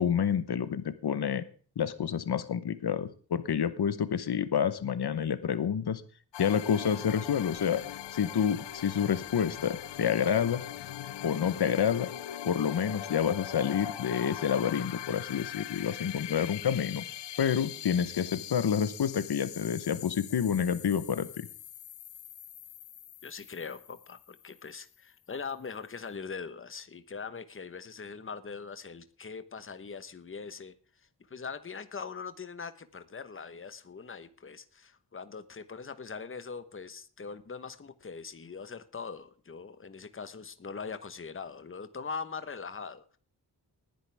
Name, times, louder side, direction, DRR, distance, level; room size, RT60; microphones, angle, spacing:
voice 1, 0.0-1.4 1.8-6.0 6.4-7.8 8.1-10.6 11.2-12.1 12.5-17.0 17.4-21.5, left 8 dB, 65° left, 1.1 m, -28 dB
sound 1, 6.3-24.8, left 11 dB, 80° left, 0.7 m, -42 dB
voice 2, 23.2-43.2, left 5 dB, 30° left, 1.1 m, -42 dB
19.5 x 10.5 x 3.5 m
wide cardioid pair, 155°, 42 cm